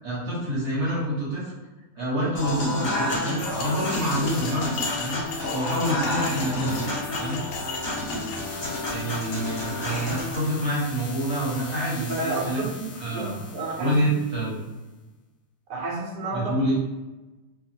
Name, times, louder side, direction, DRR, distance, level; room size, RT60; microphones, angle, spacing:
voice 1, 0.0-1.5 1.9-5.2 5.5-6.8 7.2-7.4 8.9-12.6 12.9-14.6 16.3-16.7, right 1 dB, 50° right, -7 dB, 1.0 m, -27 dB
Human voice / Acoustic guitar / Piano, 2.3-10.4, left 1 dB, 55° left, 1.2 m, -30 dB
sound 1, 3.1-8.4, left 3 dB, 90° left, 1.3 m, -36 dB
sound 2, 3.4-14.8, left 4 dB, 70° left, 0.8 m, -43 dB
voice 2, 12.1-13.9 15.7-16.5, right 2 dB, 75° right, -1 dB, 1.3 m, -31 dB
3.4 x 2.1 x 2.7 m, 1.1 s
omnidirectional pair, 1.9 m